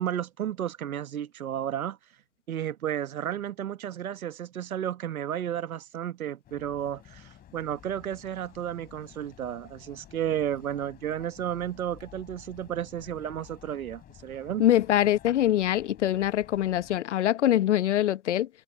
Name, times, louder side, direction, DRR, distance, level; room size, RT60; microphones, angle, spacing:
voice 1, 0.0-2.0 2.5-14.6, right 10 dB, 60° right, 1.4 m, -32 dB
sound 1, 6.4-17.0, left 11 dB, 20° left, 5.4 m, -52 dB
voice 2, 14.6-18.5, left 12 dB, 45° left, 0.9 m, -24 dB
hypercardioid pair, 130°, 49 cm